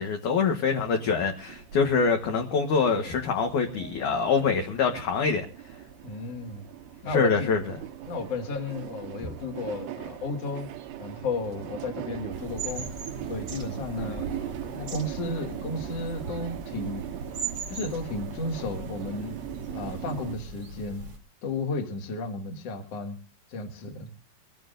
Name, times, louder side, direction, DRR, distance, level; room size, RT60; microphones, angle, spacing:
voice 1, 0.0-5.5 7.1-7.6, left 5 dB, 65° left, 2.1 m, -25 dB
sound 1, 0.9-20.4, right 10 dB, 80° right, 3.3 m, -40 dB
voice 2, 6.0-6.6 7.0-7.5 8.1-10.7 11.0-12.9 13.3-17.1 17.7-19.4 19.7-21.0 21.4-23.2 23.5-24.1, left 3 dB, 50° left, 2.2 m, -33 dB
sound 2, 12.3-21.2, right 4 dB, 40° right, 1.5 m, -40 dB
23.5 x 15.5 x 2.5 m
omnidirectional pair, 5.0 m